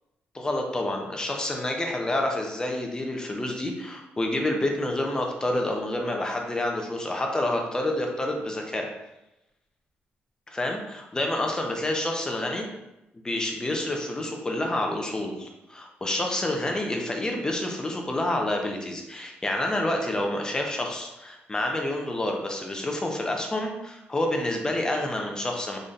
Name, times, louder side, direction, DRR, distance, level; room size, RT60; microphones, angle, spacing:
voice 1, 0.3-8.9 10.5-12.7 13.1-25.8, left 1 dB, 15° left, 2 dB, 0.6 m, -28 dB
3.8 x 3.1 x 2.6 m, 0.93 s
cardioid pair, 135°, 4 cm